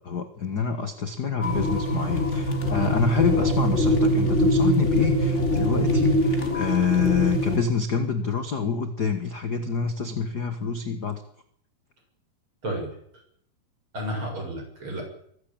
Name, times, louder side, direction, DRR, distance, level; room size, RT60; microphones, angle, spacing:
voice 1, 0.0-11.2, left 6 dB, 45° left, 9 dB, 1.5 m, -27 dB
sound 1, 1.4-7.6, equal, 20° left, 3.9 m, -23 dB
voice 2, 13.9-15.0, right 1 dB, 35° right, 2 dB, 8.4 m, -31 dB
23.5 x 15.5 x 8.9 m, 0.69 s
omnidirectional pair, 3.8 m